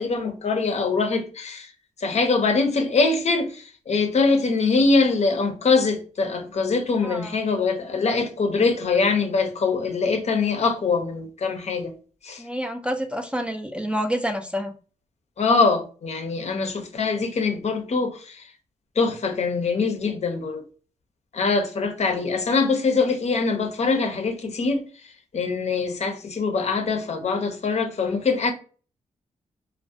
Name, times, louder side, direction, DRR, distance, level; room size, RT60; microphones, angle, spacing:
voice 1, 0.0-1.7 2.0-11.9 12.2-12.4 15.4-18.5 19.0-20.6 21.3-24.8 25.3-28.5, left 4 dB, 50° left, 0.5 m, -23 dB
voice 2, 7.0-7.4 12.4-14.7, equal, 5° right, 0.4 m, -28 dB
2.3 x 2.1 x 2.6 m
supercardioid pair, 45°, 14 cm